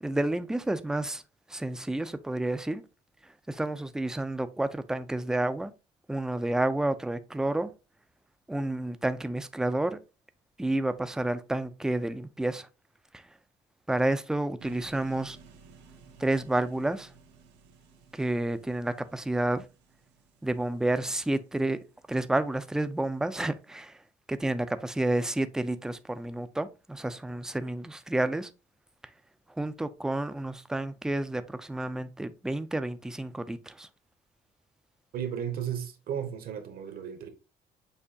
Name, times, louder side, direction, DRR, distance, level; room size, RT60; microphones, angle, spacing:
voice 1, 0.0-1.2 1.5-2.8 3.2-5.7 6.1-7.7 8.5-10.0 10.6-12.7 13.1-13.3 13.9-15.4 16.2-17.1 18.1-19.7 20.4-24.0 24.3-28.5 29.5-33.9, right 1 dB, 5° right, 0.3 m, -30 dB
sound 1, 14.6-22.7, right 4 dB, 85° right, 0.8 m, -56 dB
voice 2, 35.1-37.3, right 9 dB, 55° right, 0.8 m, -34 dB
6.7 x 2.7 x 2.6 m
cardioid pair, 135°, 18 cm